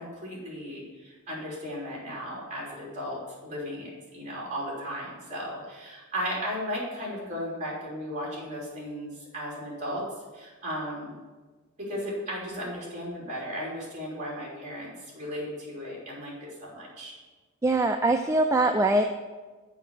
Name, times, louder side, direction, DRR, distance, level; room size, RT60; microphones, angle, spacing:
voice 1, 0.0-10.0 10.3-11.2 11.8-17.1, equal, 35° right, -4 dB, 3.3 m, -35 dB
voice 2, 17.6-19.0, right 2 dB, 15° right, 4 dB, 0.4 m, -22 dB
7.3 x 5.6 x 6.8 m, 1.3 s
head